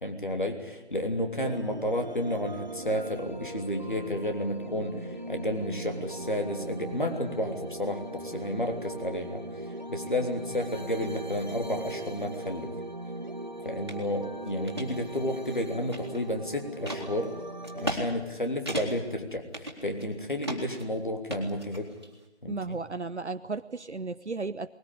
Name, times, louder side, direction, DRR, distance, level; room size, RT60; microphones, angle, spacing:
voice 1, 0.0-12.7 13.6-17.4 17.7-21.9 22.4-22.8, left 1 dB, 45° left, 4 dB, 3.3 m, -32 dB
sound 1, 1.4-18.0, right 1 dB, 40° right, 1.1 m, -39 dB
sound 2, 13.9-14.0 14.5-14.9 15.4-16.3 16.9-17.0 17.6-18.0 18.3-18.4 18.7-19.1 19.5-20.1 20.4-20.8 21.3-22.1, equal, 25° right, 3.0 m, -35 dB
voice 2, 22.5-24.7, right 3 dB, 75° right, 10 dB, 0.9 m, -34 dB
20.5 x 20.0 x 9.9 m, 0.97 s
figure-of-eight pair, 180°, 35 cm